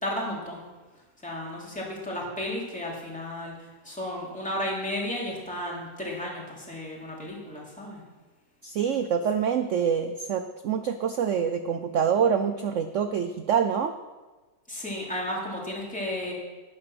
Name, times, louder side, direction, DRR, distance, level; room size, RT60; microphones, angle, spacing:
voice 1, 0.0-0.6 1.2-8.0 14.7-16.3, left 1 dB, 5° left, -4 dB, 2.9 m, -33 dB
voice 2, 8.6-13.9, right 7 dB, 80° right, 9 dB, 0.6 m, -26 dB
12.0 x 9.6 x 6.0 m, 1.3 s
omnidirectional pair, 2.0 m